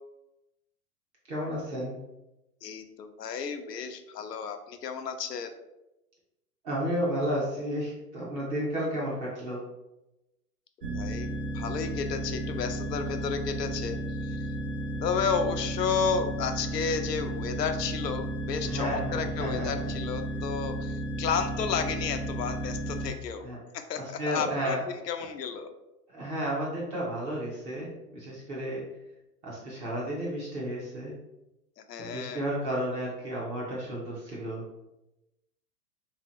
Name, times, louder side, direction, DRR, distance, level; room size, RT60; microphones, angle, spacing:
voice 1, 1.3-2.0 6.6-9.6 18.6-19.7 23.4-23.6 24.0-24.8 26.1-28.8 29.4-31.1 32.0-34.6, equal, 15° right, -6 dB, 0.3 m, -32 dB
voice 2, 2.6-5.5 10.8-14.0 14.2-14.5 15.0-23.5 23.7-25.7 31.8-32.5, left 6 dB, 85° left, 6 dB, 0.6 m, -32 dB
sound 1, 10.8-23.1, right 1 dB, 75° right, 0.8 m, -33 dB
3.2 x 2.8 x 3.0 m, 0.94 s
hypercardioid pair, 110°, 47 cm